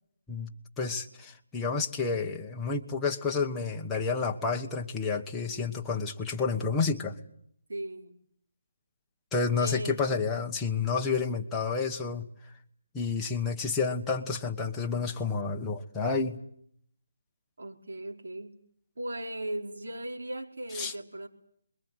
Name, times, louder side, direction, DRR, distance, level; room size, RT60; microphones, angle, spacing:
voice 1, 0.8-7.2 9.3-12.3 12.9-16.4 20.7-20.9, left 4 dB, 10° left, 0 dB, 1.2 m, -30 dB
voice 2, 7.7-8.1 9.6-10.0 17.6-18.6 19.0-21.3, right 1 dB, 75° right, 2 dB, 4.6 m, -37 dB
28.5 x 22.5 x 7.9 m, 0.69 s
hypercardioid pair, 170°, 0 cm